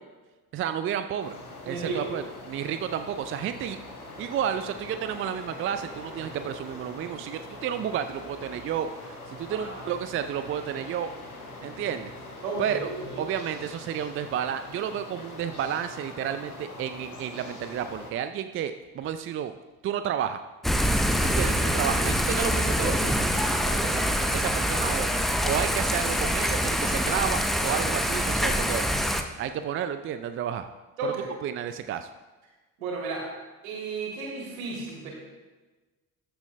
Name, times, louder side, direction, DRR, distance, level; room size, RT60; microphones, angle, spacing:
voice 1, 0.5-1.4 1.7-3.8 4.2-11.1 11.6-12.1 12.6-12.9 13.2-19.5 19.8-20.4 21.2-25.1 25.4-28.8 29.4-30.7 31.0-31.1 31.4-32.1, right 9 dB, 30° right, 10 dB, 0.5 m, -31 dB
sound 1, 1.2-18.1, left 2 dB, 85° left, 1.2 m, -43 dB
voice 2, 1.6-2.1 9.5-9.8 12.4-13.2 31.0-31.3 32.8-33.3 33.6-35.1, right 3 dB, 70° right, -2 dB, 2.9 m, -33 dB
Thunder / Rain, 20.6-29.2, equal, ahead, 0.8 m, -25 dB
14.5 x 11.0 x 2.2 m, 1.2 s
figure-of-eight pair, 55°, 43 cm